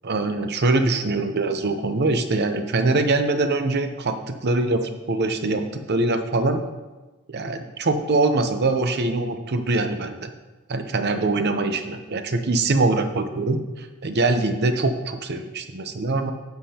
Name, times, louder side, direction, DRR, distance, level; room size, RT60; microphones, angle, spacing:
voice 1, 0.0-4.8 5.1-6.6 7.3-10.3 10.7-16.3, right 2 dB, 50° right, 7 dB, 0.7 m, -23 dB
11.5 x 7.6 x 2.9 m, 1.2 s
head